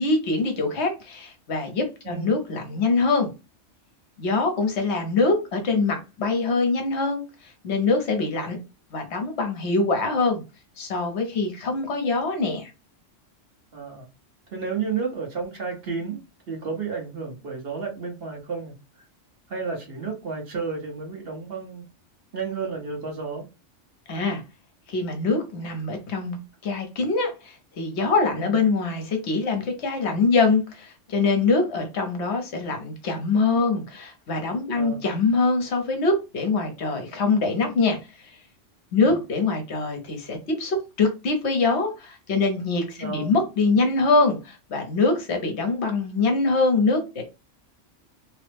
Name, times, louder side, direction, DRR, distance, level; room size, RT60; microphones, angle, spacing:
voice 1, 0.0-3.3 4.2-8.6 8.9-10.4 10.8-12.7 24.1-24.4 24.9-38.0 38.2-38.4 38.9-47.2, left 3 dB, 65° left, 1.0 m, -24 dB
voice 2, 13.7-14.1 14.5-16.2 16.5-18.7 19.5-21.8 22.3-23.4 28.3-28.5 34.8-35.0 39.0-39.2 43.0-43.3, right 5 dB, 55° right, 1.2 m, -31 dB
3.0 x 2.0 x 3.3 m
omnidirectional pair, 1.3 m